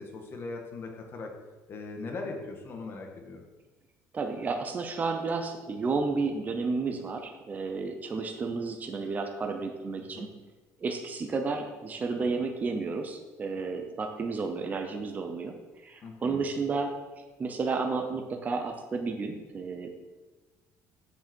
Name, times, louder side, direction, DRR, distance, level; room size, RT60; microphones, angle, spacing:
voice 1, 0.0-1.3 1.7-3.4 10.1-10.3 16.0-16.4, left 3 dB, 40° left, 2 dB, 1.6 m, -39 dB
voice 2, 4.1-10.3 10.8-15.6 15.8-16.9 17.4-19.9, right 4 dB, 30° right, 4 dB, 0.8 m, -32 dB
7.6 x 6.6 x 4.5 m, 1.2 s
cardioid pair, 130°, 6 cm